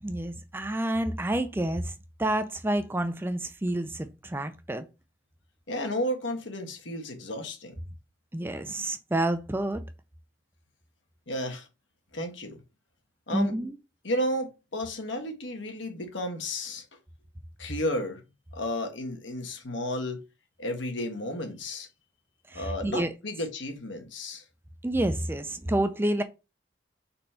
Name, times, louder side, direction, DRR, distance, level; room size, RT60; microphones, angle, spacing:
voice 1, 0.0-1.9 2.2-4.9 8.3-9.8 13.3-13.7 22.5-23.1 24.8-26.2, right 1 dB, 10° right, 0.4 m, -29 dB
voice 2, 5.7-7.7 11.3-11.7 12.1-12.6 13.3-13.5 14.0-16.8 17.6-18.2 18.5-20.2 20.6-21.9 22.5-24.4, left 1 dB, 75° left, 1.4 m, -32 dB
4.3 x 4.3 x 5.5 m
head